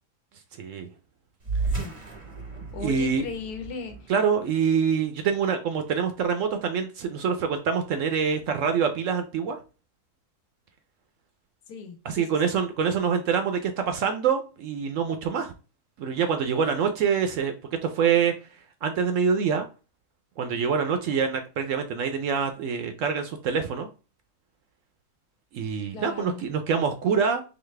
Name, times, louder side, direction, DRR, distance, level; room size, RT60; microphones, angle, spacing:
voice 1, 0.6-0.9 2.8-3.2 4.1-9.6 12.0-15.5 16.0-17.5 17.8-18.3 18.8-19.7 20.4-23.9 25.5-27.4, right 6 dB, 70° right, 0.8 m, -25 dB
sound 1, 1.4-6.3, right 4 dB, 35° right, 0.6 m, -35 dB
voice 2, 2.7-4.0 11.7-12.5 25.9-26.4, left 4 dB, 80° left, 1.3 m, -37 dB
4.0 x 2.7 x 3.1 m
omnidirectional pair, 1.6 m